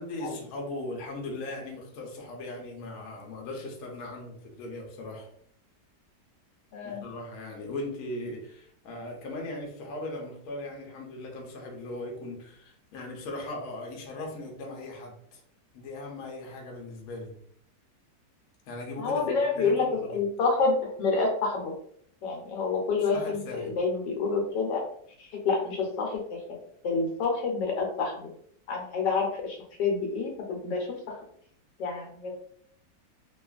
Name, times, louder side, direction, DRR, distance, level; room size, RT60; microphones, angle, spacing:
voice 1, 0.0-5.3 6.8-15.4 15.7-17.3 18.7-19.2 19.5-20.2 23.0-23.7, left 2 dB, 65° left, 0 dB, 1.1 m, -38 dB
voice 2, 19.0-21.7 22.2-24.8 25.2-26.6 26.8-28.3 28.7-31.2 31.8-32.3, left 4 dB, 80° left, 0 dB, 1.3 m, -28 dB
2.8 x 2.4 x 2.3 m, 0.63 s
omnidirectional pair, 1.9 m